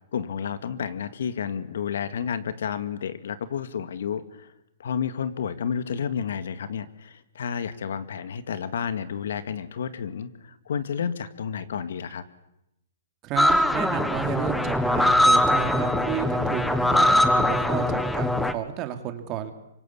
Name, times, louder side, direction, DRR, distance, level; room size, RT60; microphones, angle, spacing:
voice 1, 0.1-4.5 4.8-12.2, left 7 dB, 70° left, 13 dB, 1.9 m, -31 dB
voice 2, 13.2-19.5, right 10 dB, 30° right, 8 dB, 2.7 m, -32 dB
sound 1, 13.4-18.5, left 1 dB, 5° left, 1.2 m, -21 dB
25.0 x 23.5 x 8.5 m, 0.84 s
hypercardioid pair, 145°, 0 cm